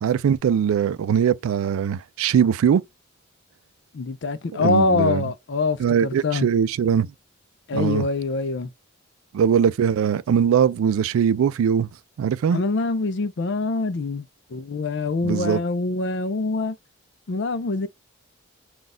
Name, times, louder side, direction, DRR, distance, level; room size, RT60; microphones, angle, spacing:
voice 1, 0.0-2.8 4.6-5.2 5.8-7.1 7.7-8.1 9.3-11.9 12.2-12.6 15.2-15.6, right 8 dB, 85° right, 0.3 m, -21 dB
voice 2, 3.9-6.5 7.7-8.7 12.5-16.8 17.3-17.9, left 3 dB, 55° left, 0.4 m, -24 dB
4.0 x 2.3 x 3.7 m
head